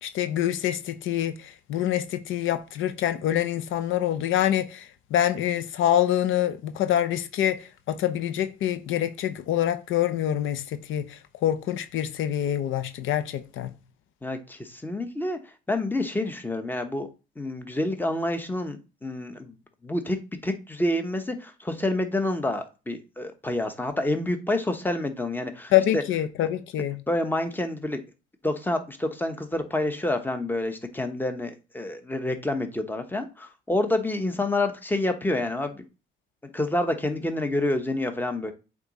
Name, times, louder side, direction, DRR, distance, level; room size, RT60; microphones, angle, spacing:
voice 1, 0.0-13.7 25.7-27.0, left 11 dB, 80° left, 0.6 m, -26 dB
voice 2, 14.2-15.4 15.7-17.1 17.4-18.8 19.0-19.5 19.8-26.0 27.1-28.0 28.4-35.8 36.4-38.5, left 1 dB, 10° left, 1.0 m, -28 dB
8.1 x 3.7 x 4.0 m
cardioid pair, 90°, 20 cm